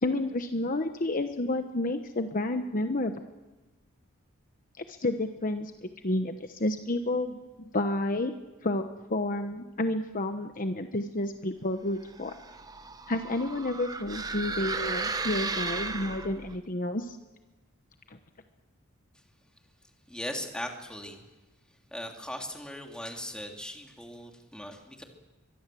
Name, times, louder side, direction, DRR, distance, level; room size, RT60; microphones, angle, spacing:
voice 1, 0.0-3.2 4.8-7.4 7.7-8.3 8.6-12.3 13.1-17.2, left 1 dB, 40° left, 7 dB, 1.0 m, -30 dB
sound 1, 12.1-16.6, right 3 dB, 20° right, 1.1 m, -35 dB
voice 2, 20.1-21.2 21.9-25.0, left 1 dB, 5° left, 2 dB, 2.9 m, -39 dB
23.5 x 22.5 x 7.7 m, 1.2 s
head